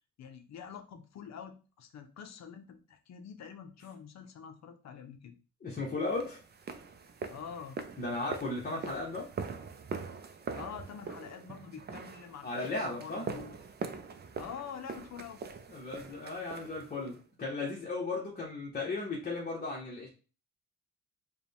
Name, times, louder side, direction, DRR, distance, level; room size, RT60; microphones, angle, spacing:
voice 1, 0.2-5.4 7.3-7.8 10.5-13.6 14.4-15.4, left 7 dB, 60° left, 7 dB, 0.7 m, -46 dB
voice 2, 5.6-6.4 8.0-9.3 12.4-13.2 15.7-20.1, left 3 dB, 30° left, -4 dB, 1.2 m, -36 dB
sound 1, 6.1-17.2, right 5 dB, 35° right, 0.5 m, -43 dB
4.8 x 2.3 x 3.5 m, 0.35 s
cardioid pair, 90°, 30 cm